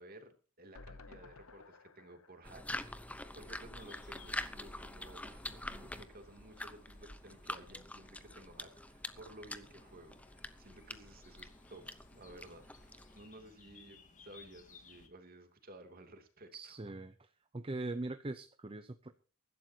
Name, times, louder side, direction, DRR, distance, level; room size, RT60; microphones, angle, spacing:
voice 1, 0.0-16.9, right 1 dB, 45° right, 5 dB, 2.9 m, -55 dB
sound 1, 0.8-4.0 4.4-4.5 4.7-4.8, left 3 dB, 85° left, 1.0 m, -57 dB
sound 2, 2.4-13.3, left 1 dB, 5° left, 0.9 m, -46 dB
sound 3, 3.8-15.1, left 3 dB, 35° left, 2.2 m, -62 dB
voice 2, 16.5-17.1 17.5-19.1, right 2 dB, 25° right, 10 dB, 0.7 m, -41 dB
23.5 x 12.0 x 2.9 m, 0.35 s
head